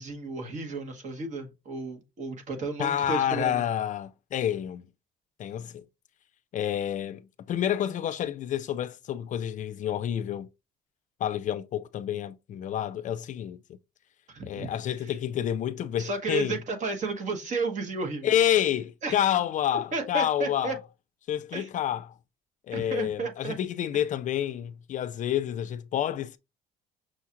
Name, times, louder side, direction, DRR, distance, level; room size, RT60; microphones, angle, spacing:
voice 1, 0.0-3.6 14.3-14.7 15.0-15.1 16.0-18.4 19.0-19.2 19.9-20.8 21.5-21.7 22.7-23.6 23.9-24.0, right 3 dB, 45° right, 1.2 m, -33 dB
voice 2, 2.8-4.9 5.4-5.8 6.5-10.5 11.2-13.6 14.4-16.6 18.2-20.8 21.3-22.1 22.7-26.4, left 10 dB, 50° left, 0.4 m, -29 dB
6.2 x 2.4 x 2.9 m
cardioid pair, 110°, 17 cm